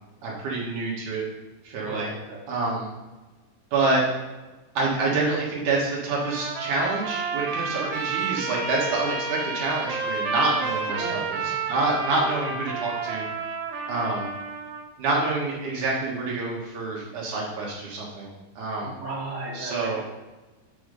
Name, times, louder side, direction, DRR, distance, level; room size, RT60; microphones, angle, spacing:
voice 1, 0.2-1.2 1.6-2.1 2.5-2.9 3.7-4.0 4.7-13.2 13.9-14.3 15.0-18.9 19.5-20.0, right 3 dB, 60° right, -4 dB, 2.4 m, -27 dB
voice 2, 1.8-2.4 10.9-11.6 18.8-20.0, right 2 dB, 45° right, -5 dB, 0.9 m, -35 dB
Trumpet, 6.1-14.9, right 4 dB, 85° right, 3.0 m, -30 dB
8.3 x 4.3 x 5.2 m, 1.1 s
omnidirectional pair, 4.7 m